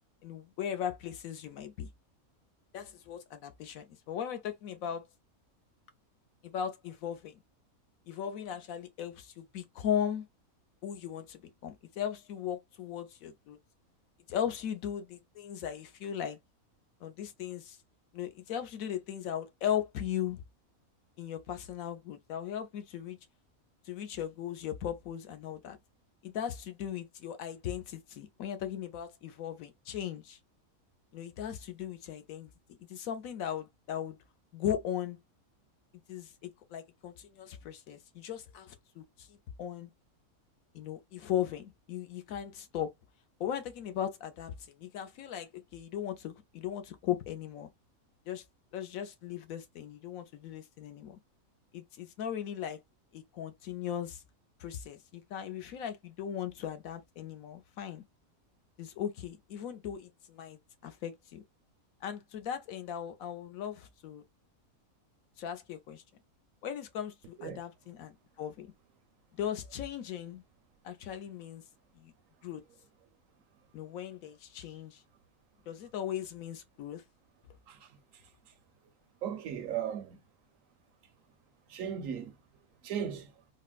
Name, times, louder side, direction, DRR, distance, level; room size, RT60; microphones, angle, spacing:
voice 1, 0.2-1.9 2.7-5.0 6.4-7.4 8.1-10.3 10.8-13.6 14.3-16.4 17.0-17.8 18.1-20.4 21.2-23.2 23.8-25.8 26.2-30.4 31.1-32.5 32.8-34.2 34.5-35.2 36.1-39.9 40.7-42.9 43.4-47.7 48.3-48.4 48.7-51.2 51.7-52.8 53.1-54.2 54.6-58.0 58.8-61.4 62.0-64.2 65.4-66.0 66.6-68.7 69.4-70.4 70.8-71.6 72.0-72.1 72.4-72.6 73.7-75.0 75.7-77.0, left 9 dB, 80° left, 1.1 m, -38 dB
voice 2, 79.2-80.2 81.7-82.3 82.8-83.3, right 8 dB, 70° right, 1.0 m, -36 dB
4.1 x 2.1 x 2.3 m
omnidirectional pair, 1.5 m